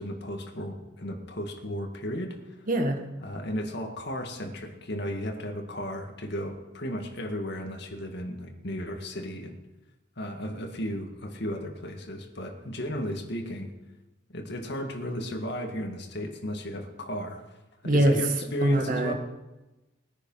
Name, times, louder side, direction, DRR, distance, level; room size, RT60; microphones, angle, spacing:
voice 1, 0.0-2.5 3.2-9.6 10.2-13.7 14.3-17.4 17.8-19.1, equal, 60° left, 3 dB, 2.1 m, -34 dB
voice 2, 2.7-3.0 17.8-18.1 18.6-19.1, right 1 dB, 45° right, 4 dB, 1.6 m, -23 dB
20.0 x 9.9 x 5.7 m, 1.0 s
head